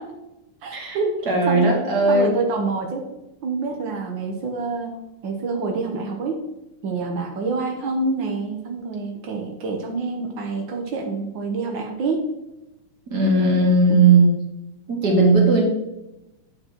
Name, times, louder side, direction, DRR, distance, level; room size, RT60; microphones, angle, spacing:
voice 1, 0.6-1.2 1.5-1.6 2.1-3.0 3.4-6.4 6.8-12.2 13.9-14.0, right 3 dB, 75° right, 1 dB, 1.0 m, -27 dB
voice 2, 1.3-2.4 13.1-14.3 14.9-15.6, right 3 dB, 35° right, -1 dB, 2.2 m, -17 dB
9.2 x 8.1 x 3.0 m, 0.92 s
omnidirectional pair, 3.7 m